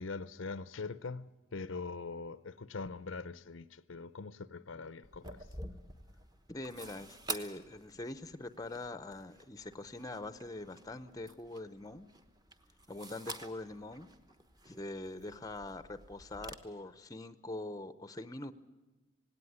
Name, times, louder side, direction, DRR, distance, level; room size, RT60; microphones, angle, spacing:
voice 1, 0.0-5.5, left 4 dB, 65° left, 0.6 m, -42 dB
sound 1, 5.0-16.5, right 2 dB, 20° right, 1.1 m, -49 dB
voice 2, 6.5-12.1 12.9-14.1 14.7-18.5, left 2 dB, 15° left, 0.7 m, -43 dB
18.5 x 17.5 x 9.9 m
head